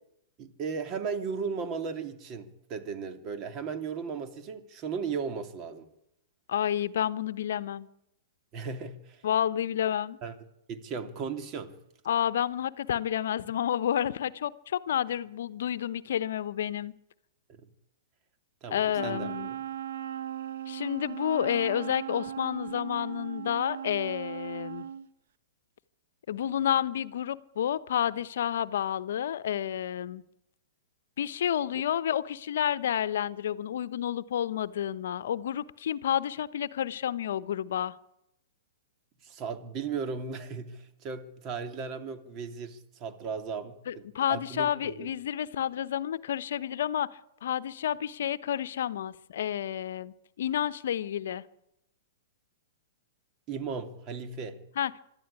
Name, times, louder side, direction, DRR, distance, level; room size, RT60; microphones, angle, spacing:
voice 1, 0.4-5.9 8.5-9.2 10.2-10.3 10.7-11.7 17.5-17.7 18.6-19.6 39.2-45.1 53.5-54.6, right 5 dB, 35° right, 2.8 m, -36 dB
voice 2, 6.5-7.9 9.2-10.2 12.1-16.9 18.7-19.5 20.7-24.8 26.3-30.2 31.2-38.0 43.9-47.1 47.4-51.4 54.8-54.9, left 10 dB, 65° left, 0.9 m, -30 dB
Wind instrument woodwind instrument, 18.9-25.1, right 9 dB, 65° right, 1.2 m, -38 dB
25.0 x 12.5 x 9.7 m
hypercardioid pair, 115°, 0 cm